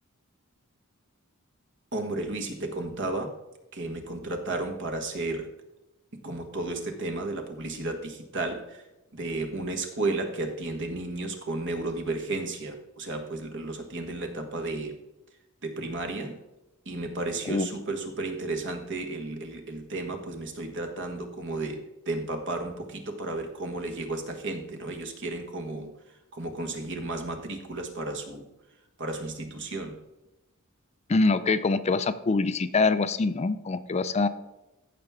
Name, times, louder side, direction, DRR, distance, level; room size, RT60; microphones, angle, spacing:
voice 1, 1.9-3.3 3.7-5.5 6.2-8.9 9.1-15.0 15.6-16.4 16.8-28.4 29.0-30.0, right 2 dB, 60° right, 5 dB, 1.6 m, -33 dB
voice 2, 31.1-34.3, left 3 dB, 30° left, 12 dB, 0.4 m, -24 dB
15.0 x 5.9 x 3.6 m, 0.97 s
head